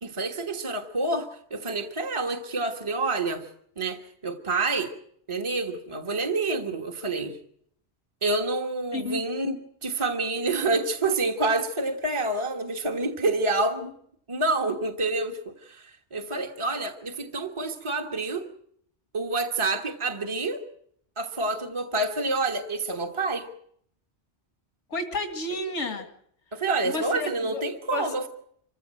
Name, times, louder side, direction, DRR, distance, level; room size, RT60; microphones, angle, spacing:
voice 1, 0.0-3.5 3.8-4.9 5.3-7.4 8.2-13.9 14.3-18.5 19.1-20.6 21.2-23.5 26.5-28.3, right 3 dB, 25° right, 3 dB, 1.5 m, -28 dB
voice 2, 24.9-26.1 26.9-27.6 27.9-28.1, left 2 dB, 85° left, 6 dB, 2.4 m, -31 dB
26.0 x 15.5 x 7.7 m, 0.68 s
omnidirectional pair, 1.2 m